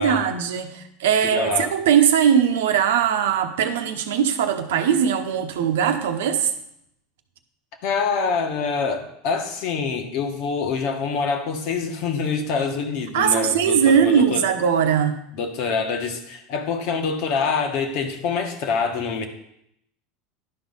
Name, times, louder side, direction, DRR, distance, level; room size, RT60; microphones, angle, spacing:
voice 1, 0.0-6.5 13.1-15.2, right 8 dB, 85° right, 0.9 m, -20 dB
voice 2, 1.2-1.7 7.8-14.4 15.3-19.3, left 5 dB, 60° left, 1.5 m, -25 dB
11.5 x 4.6 x 5.6 m
supercardioid pair, 110°, 0 cm